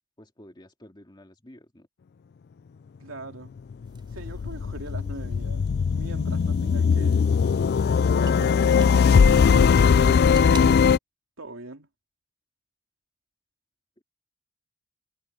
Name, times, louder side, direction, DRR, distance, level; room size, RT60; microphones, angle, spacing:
voice 1, 0.2-1.9, left 1 dB, 20° left, 2.5 m, -50 dB
voice 2, 3.0-3.5 4.1-5.6 5.9-7.3 8.2-10.8 11.4-11.9, right 2 dB, 65° right, 3.2 m, -41 dB
sound 1, 3.7-11.0, left 6 dB, 50° left, 0.3 m, -20 dB
sound 2, 3.8-10.6, right 4 dB, 20° right, 3.9 m, -50 dB
head